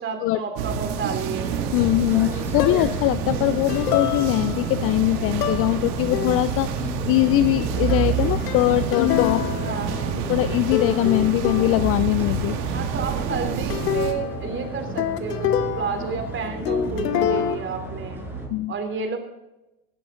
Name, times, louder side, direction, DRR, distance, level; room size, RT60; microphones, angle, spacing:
voice 1, 0.0-1.5 9.5-10.4 12.7-18.2 18.7-19.2, right 5 dB, 25° right, 5 dB, 3.4 m, -31 dB
sound 1, 0.6-14.1, right 7 dB, 60° right, 2.2 m, -29 dB
sound 2, 1.3-18.5, right 4 dB, 5° right, 6.0 m, -32 dB
voice 2, 1.7-9.8 10.3-12.7 18.5-18.7, left 16 dB, 30° left, 16 dB, 0.4 m, -22 dB
sound 3, 2.6-3.1 3.7-4.7 5.4-5.8 6.1-6.7 7.9-10.5 10.7-12.1 13.3-16.4 16.6-17.6, left 10 dB, 75° left, 1.3 m, -27 dB
17.5 x 13.5 x 3.8 m, 0.95 s
hypercardioid pair, 95°, 48 cm